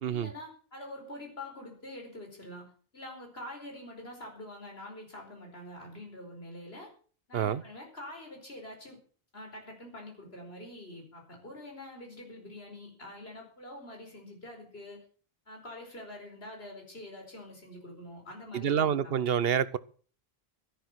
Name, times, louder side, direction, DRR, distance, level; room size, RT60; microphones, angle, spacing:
voice 1, 0.1-6.9 7.3-9.0 9.3-15.0 15.5-19.1, left 1 dB, 75° left, 5.1 m, -45 dB
voice 2, 18.5-19.8, right 8 dB, 70° right, 1.0 m, -27 dB
12.5 x 11.5 x 6.2 m
omnidirectional pair, 1.1 m